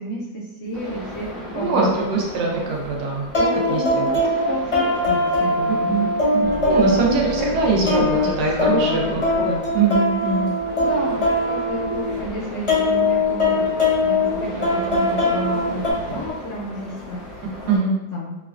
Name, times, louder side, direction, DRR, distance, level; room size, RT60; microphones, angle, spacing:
voice 1, 0.0-2.4 3.5-6.1 6.8-8.3 8.6-9.1 10.8-18.3, left 1 dB, 65° left, -5 dB, 0.8 m, -31 dB
sound 1, 0.7-17.8, equal, 30° right, 0.9 m, -37 dB
sound 2, 1.2-1.3 3.3-12.3 12.7-15.9, left 2 dB, 40° left, 0.5 m, -21 dB
voice 2, 1.5-4.1 5.9-10.5 17.7-17.9, right 3 dB, 85° right, -2 dB, 1.2 m, -23 dB
sound 3, 6.4-16.3, left 1 dB, 55° right, 1.2 m, -35 dB
3.1 x 2.2 x 2.3 m, 1.0 s
omnidirectional pair, 1.6 m